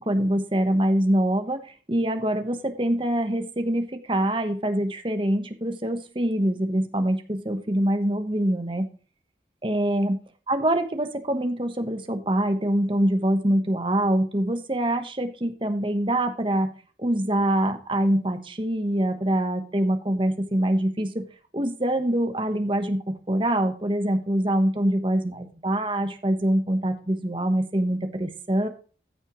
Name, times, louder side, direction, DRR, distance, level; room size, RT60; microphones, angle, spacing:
voice 1, 0.0-8.9 9.6-10.2 10.5-16.7 17.0-21.3 21.5-28.7, right 1 dB, 30° right, 7 dB, 1.2 m, -24 dB
14.0 x 6.6 x 3.1 m, 0.38 s
head